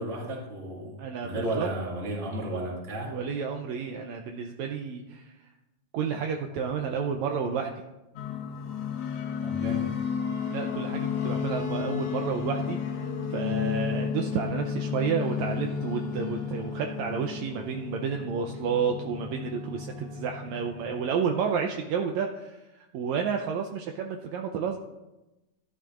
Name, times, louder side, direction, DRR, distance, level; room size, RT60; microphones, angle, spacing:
voice 1, 0.0-1.0 1.2-3.2 9.4-9.9, right 1 dB, 30° right, -1 dB, 1.7 m, -33 dB
voice 2, 1.0-1.7 3.1-5.4 5.9-7.7 10.5-24.8, right 6 dB, 80° right, 3 dB, 1.7 m, -31 dB
sound 1, 8.2-21.1, left 7 dB, 65° left, 1.7 m, -32 dB
13.5 x 12.0 x 2.5 m, 1.0 s
omnidirectional pair, 3.7 m